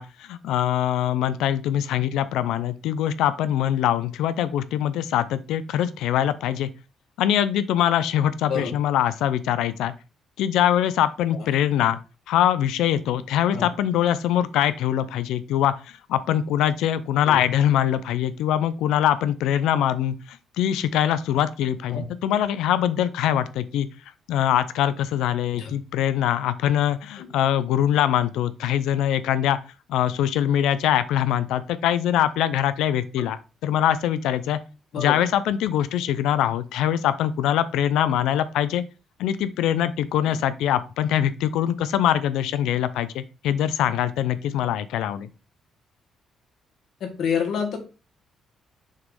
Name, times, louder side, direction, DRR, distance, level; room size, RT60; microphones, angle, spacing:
voice 1, 0.0-6.7 7.2-9.9 10.4-12.0 12.3-23.9 24.3-29.6 29.9-34.6 35.0-38.8 39.2-45.3, left 11 dB, 90° left, 14 dB, 0.5 m, -23 dB
voice 2, 47.0-47.8, left 6 dB, 70° left, 3 dB, 2.0 m, -28 dB
6.6 x 3.0 x 5.2 m, 0.32 s
cardioid pair, 90°, 0 cm